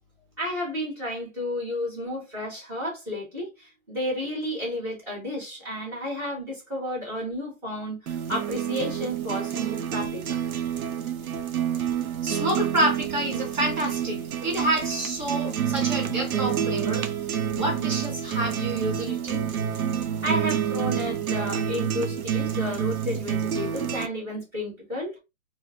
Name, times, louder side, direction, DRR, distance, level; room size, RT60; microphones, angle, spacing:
voice 1, 0.4-10.4 20.2-25.1, equal, 5° right, 0.8 m, -32 dB
sound 1, 8.1-24.1, right 9 dB, 85° right, 0.6 m, -28 dB
voice 2, 12.2-17.0 17.5-19.4, right 1 dB, 35° right, 1.2 m, -28 dB
3.3 x 2.0 x 2.3 m
hypercardioid pair, 155°, 42 cm